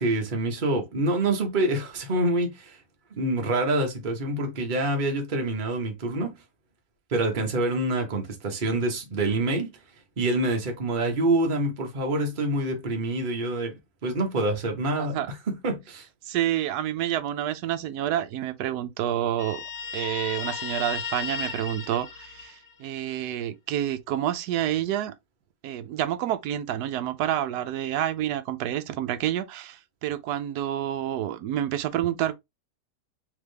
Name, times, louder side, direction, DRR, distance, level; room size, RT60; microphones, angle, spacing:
voice 1, 0.0-2.8 3.1-6.4 7.1-9.7 10.2-13.7 14.0-15.2 15.5-16.1, right 2 dB, 35° right, 1.1 m, -26 dB
voice 2, 15.0-15.3 16.2-19.6 19.9-25.1 25.6-32.3, right 11 dB, 75° right, 1.1 m, -28 dB
Guitar, 19.4-23.0, left 6 dB, 75° left, 1.6 m, -35 dB
3.6 x 3.5 x 3.3 m
omnidirectional pair, 1.9 m